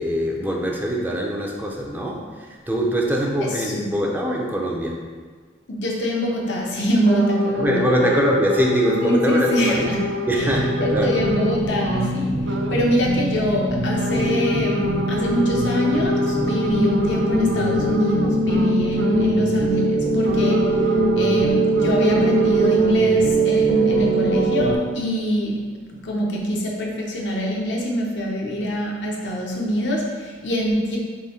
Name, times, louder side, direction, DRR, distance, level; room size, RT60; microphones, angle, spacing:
voice 1, 0.0-5.0 7.6-9.8 10.3-11.1, equal, 10° right, -1 dB, 0.5 m, -23 dB
voice 2, 5.7-7.8 9.0-10.0 10.4-10.5 10.8-20.7 21.1-25.6 26.0-31.0, equal, 85° left, -1 dB, 0.8 m, -24 dB
sound 1, 7.1-12.1 12.4-12.8 14.0-19.4 20.2-22.9, left 2 dB, 75° right, 0.4 m, -28 dB
sound 2, 10.3-24.8, right 2 dB, 35° right, 0.8 m, -22 dB
3.8 x 3.1 x 4.2 m, 1.5 s
head